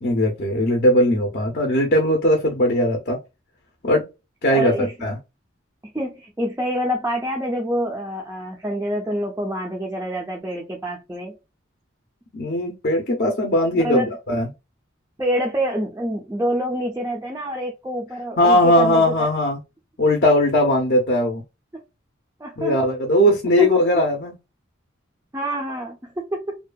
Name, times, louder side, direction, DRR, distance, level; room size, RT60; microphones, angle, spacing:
voice 1, 0.0-3.2 3.8-4.1 4.4-5.2 12.3-14.5 18.4-19.6 20.0-21.4 22.6-24.4, left 1 dB, 45° left, 0.6 m, -19 dB
voice 2, 4.5-5.1 5.9-11.3 13.7-14.1 15.2-19.3 22.4-22.8 23.6-23.7 25.3-26.6, equal, 15° right, 0.4 m, -26 dB
2.7 x 2.3 x 2.2 m
head